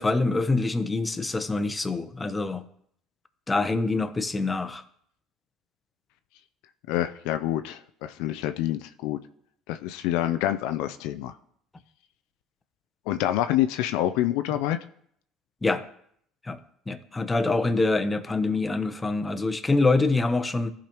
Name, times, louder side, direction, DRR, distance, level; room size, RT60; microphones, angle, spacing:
voice 1, 0.0-2.6 3.5-4.8 15.6-15.8 16.4-16.6 16.9-20.7, left 3 dB, 20° left, 10 dB, 0.8 m, -25 dB
voice 2, 6.9-9.2 9.7-11.3 13.1-14.8, left 13 dB, 75° left, 9 dB, 0.4 m, -27 dB
14.5 x 5.0 x 3.0 m, 0.66 s
hypercardioid pair, 75°, 0 cm